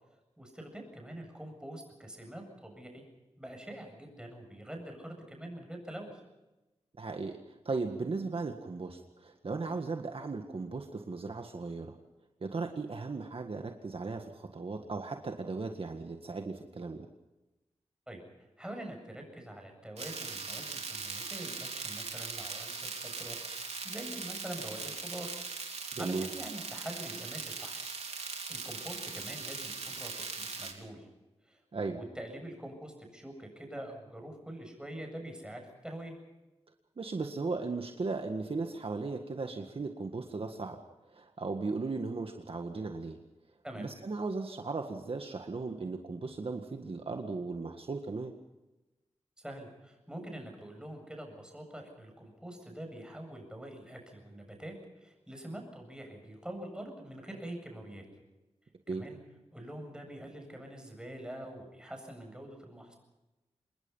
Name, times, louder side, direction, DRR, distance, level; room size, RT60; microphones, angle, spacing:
voice 1, 0.4-3.0 3.4-6.2 18.1-25.3 26.0-27.8 28.5-31.1 31.4-36.2 43.6-43.9 49.4-58.1 58.9-59.2 59.5-63.0, right 1 dB, 5° right, 3 dB, 7.9 m, -45 dB
voice 2, 7.0-12.0 12.4-17.1 26.0-26.3 31.7-32.0 37.0-40.8 41.1-43.2 43.8-48.3 58.9-59.0, right 3 dB, 55° right, 4 dB, 1.8 m, -37 dB
sound 1, 20.0-30.7, right 4 dB, 75° right, 3.7 m, -40 dB
27.0 x 21.0 x 5.7 m, 1.0 s
wide cardioid pair, 100°, 11 cm